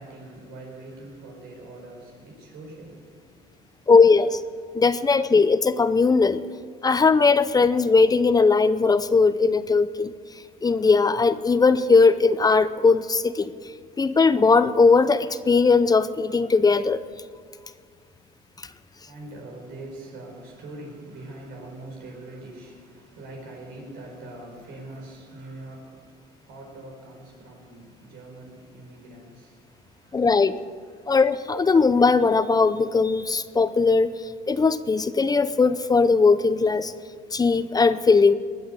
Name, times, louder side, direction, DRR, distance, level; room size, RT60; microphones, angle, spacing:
voice 1, 0.0-3.9 19.0-30.3 30.9-31.1, right 2 dB, 85° right, 4.9 m, -43 dB
voice 2, 3.9-4.4 4.7-6.4 6.8-10.1 10.6-13.5 14.0-17.0 30.1-30.5 31.1-34.1 34.5-36.9 37.3-38.3, left 4 dB, 20° left, 0.6 m, -19 dB
20.0 x 7.8 x 8.0 m
cardioid pair, 110°, 17 cm